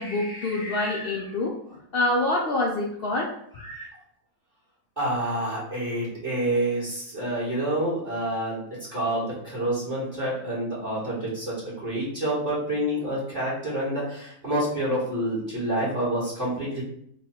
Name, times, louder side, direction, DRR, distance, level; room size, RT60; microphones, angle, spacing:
voice 1, 0.0-3.9, left 2 dB, 65° left, -2 dB, 0.5 m, -27 dB
voice 2, 5.0-8.6 8.9-16.8, right 1 dB, 35° right, -9 dB, 1.4 m, -28 dB
3.4 x 2.3 x 4.3 m, 0.70 s
omnidirectional pair, 1.5 m